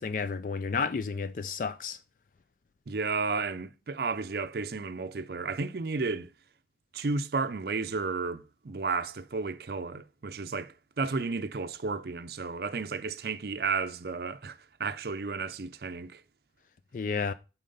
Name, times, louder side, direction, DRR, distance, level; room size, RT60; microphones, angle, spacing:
voice 1, 0.0-2.0 16.9-17.3, left 5 dB, 45° left, 0.3 m, -31 dB
voice 2, 2.9-6.3 6.9-16.2, right 4 dB, 55° right, 0.5 m, -33 dB
7.5 x 4.4 x 5.4 m
head